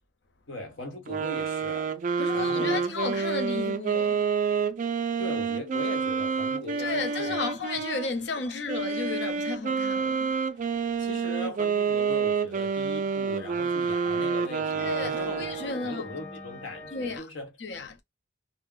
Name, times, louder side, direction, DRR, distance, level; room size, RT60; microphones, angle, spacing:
voice 1, 0.5-1.9 2.3-2.8 5.2-7.4 8.5-8.6 11.0-17.5, left 2 dB, 80° left, 1.0 m, -39 dB
sound 1, 1.1-8.1 8.7-15.8, right 5 dB, 40° right, 0.3 m, -28 dB
voice 2, 2.2-4.3 6.8-10.3 14.8-16.0 16.9-17.3 17.6-18.0, left 3 dB, 60° left, 0.6 m, -33 dB
sound 2, 7.0-9.4 9.9-12.3 13.0-17.2, left 3 dB, 30° left, 0.9 m, -47 dB
2.4 x 2.0 x 3.7 m
head